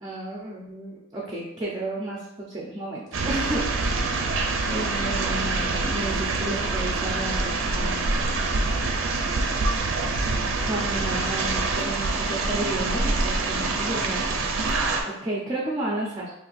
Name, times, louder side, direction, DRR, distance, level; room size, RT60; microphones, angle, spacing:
voice 1, 0.0-4.0 4.6-8.1 10.6-14.5 15.2-16.3, right 1 dB, 20° right, -5 dB, 0.5 m, -32 dB
sound 1, 3.1-15.0, right 3 dB, 70° right, 0.5 m, -25 dB
2.7 x 2.5 x 4.0 m, 0.88 s
head